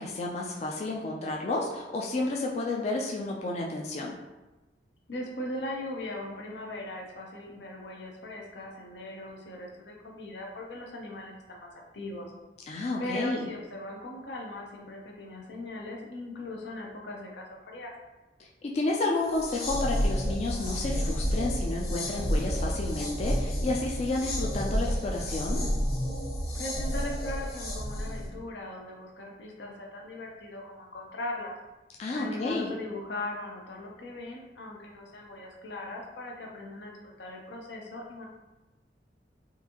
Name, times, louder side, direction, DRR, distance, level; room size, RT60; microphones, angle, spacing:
voice 1, 0.0-4.1 12.7-13.5 18.6-25.6 32.0-32.7, left 2 dB, 40° left, -1 dB, 0.3 m, -31 dB
voice 2, 5.1-12.3 13.0-17.9 26.5-31.5 32.1-38.3, left 1 dB, 80° left, 0 dB, 0.7 m, -39 dB
sound 1, 19.2-28.3, equal, 60° left, 0.9 m, -30 dB
3.8 x 2.6 x 2.9 m, 1.1 s
head